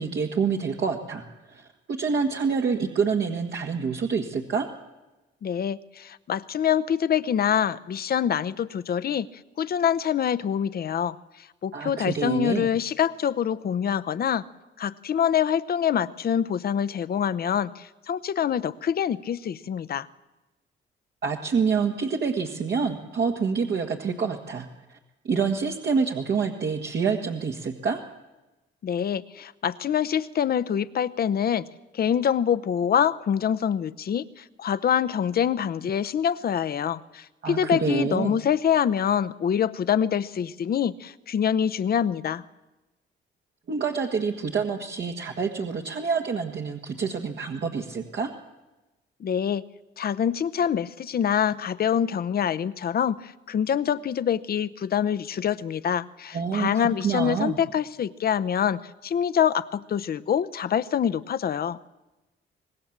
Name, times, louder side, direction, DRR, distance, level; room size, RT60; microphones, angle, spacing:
voice 1, 0.0-4.7 11.7-12.7 21.2-25.0 25.2-28.0 37.4-38.3 43.7-48.3 56.3-57.6, right 5 dB, 55° right, 0 dB, 1.7 m, -27 dB
voice 2, 5.4-9.3 9.6-14.4 14.8-20.1 28.8-31.7 31.9-42.4 49.2-49.6 50.0-61.8, left 8 dB, 50° left, 13 dB, 0.8 m, -25 dB
24.5 x 19.5 x 7.4 m, 1.1 s
cardioid pair, 90°, 20 cm